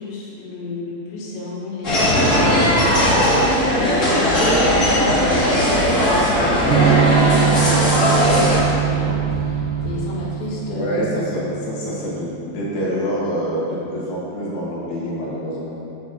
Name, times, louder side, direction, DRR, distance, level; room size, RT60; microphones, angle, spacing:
voice 1, 0.0-11.2, left 3 dB, 85° left, -5 dB, 4.0 m, -32 dB
sound 1, 1.8-8.6, equal, 30° left, 1.5 m, -17 dB
sound 2, 2.0-3.3 4.0-10.0, right 1 dB, 60° right, 3.0 m, -31 dB
Electric guitar / Strum, 6.7-12.4, right 8 dB, 85° right, 3.0 m, -22 dB
voice 2, 10.7-15.8, equal, 60° left, -7 dB, 3.5 m, -26 dB
9.3 x 5.4 x 6.5 m, 2.7 s
omnidirectional pair, 4.9 m